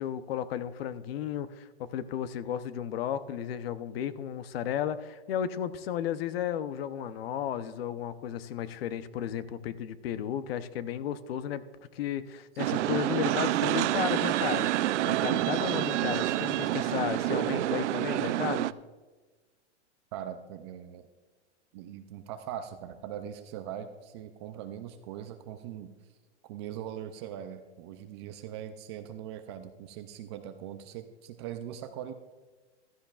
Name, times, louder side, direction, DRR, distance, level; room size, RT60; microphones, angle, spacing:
voice 1, 0.0-11.6 11.9-18.7, left 9 dB, 55° left, 14 dB, 0.7 m, -34 dB
sound 1, 12.6-18.7, right 14 dB, 85° right, 0.5 m, -28 dB
voice 2, 20.1-21.1 21.7-25.9 26.5-32.1, right 10 dB, 25° right, 9 dB, 0.4 m, -41 dB
15.5 x 13.0 x 2.4 m, 1.3 s
hypercardioid pair, 150°, 35 cm